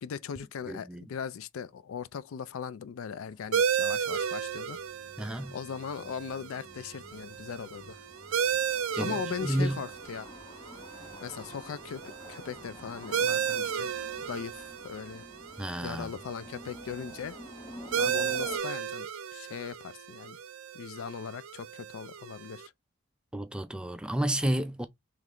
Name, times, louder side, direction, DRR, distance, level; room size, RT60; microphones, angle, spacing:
voice 1, 0.0-4.8 5.5-8.0 9.0-10.3 11.2-13.9 14.2-15.2 15.8-17.4 17.9-20.4 20.7-22.7, left 7 dB, 80° left, 0.4 m, -39 dB
voice 2, 0.6-1.0 5.2-5.6 9.0-9.8 15.6-16.1 23.3-24.9, right 1 dB, 5° right, 0.3 m, -31 dB
sound 1, 3.2-18.6, left 1 dB, 20° left, 0.7 m, -50 dB
sound 2, 3.5-22.7, right 8 dB, 80° right, 0.5 m, -34 dB
3.2 x 3.0 x 3.7 m
head